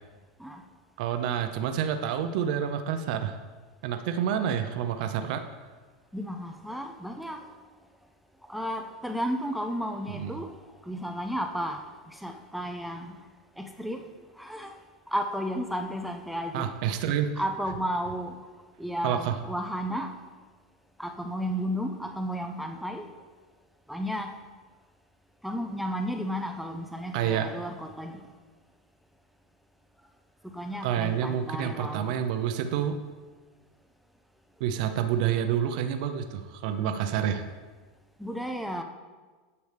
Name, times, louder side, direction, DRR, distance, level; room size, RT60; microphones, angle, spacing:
voice 1, 1.0-3.4 3.8-5.4 10.1-10.4 16.5-17.3 19.0-19.3 27.1-27.5 30.8-32.9 34.6-37.4, right 9 dB, 60° right, 7 dB, 0.6 m, -28 dB
voice 2, 6.1-7.4 8.5-10.5 10.9-11.8 12.2-13.1 13.6-14.0 14.4-14.7 15.1-16.7 17.4-18.3 18.8-20.1 21.0-23.0 23.9-24.3 25.4-28.1 30.5-32.1 38.2-38.8, equal, ahead, 4 dB, 0.4 m, -33 dB
9.5 x 6.9 x 3.3 m, 1.4 s
supercardioid pair, 140°, 5 cm